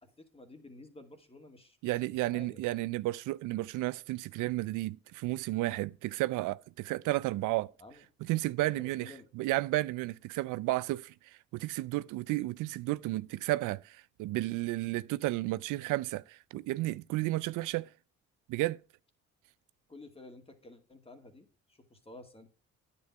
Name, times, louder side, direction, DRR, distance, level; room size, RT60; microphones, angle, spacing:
voice 1, 0.0-2.9 7.8-8.0 8.6-9.3 19.9-22.5, left 2 dB, 20° left, 2.2 m, -52 dB
voice 2, 1.8-7.7 8.2-17.9 18.5-18.8, right 18 dB, 90° right, 0.5 m, -32 dB
9.6 x 8.7 x 4.6 m
cardioid pair, 90°, 30 cm